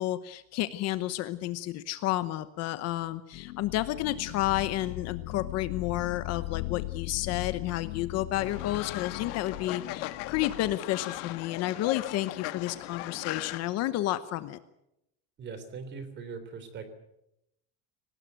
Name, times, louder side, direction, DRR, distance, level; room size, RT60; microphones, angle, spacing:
voice 1, 0.0-14.6, left 15 dB, 40° left, 13 dB, 0.9 m, -31 dB
sound 1, 3.3-10.8, left 20 dB, 80° left, 1.4 m, -39 dB
Fowl, 8.4-13.6, left 17 dB, 65° left, 1.6 m, -38 dB
voice 2, 15.4-16.9, right 5 dB, 25° right, 11 dB, 3.3 m, -40 dB
24.0 x 19.0 x 9.1 m, 0.84 s
cardioid pair, 180°, 40 cm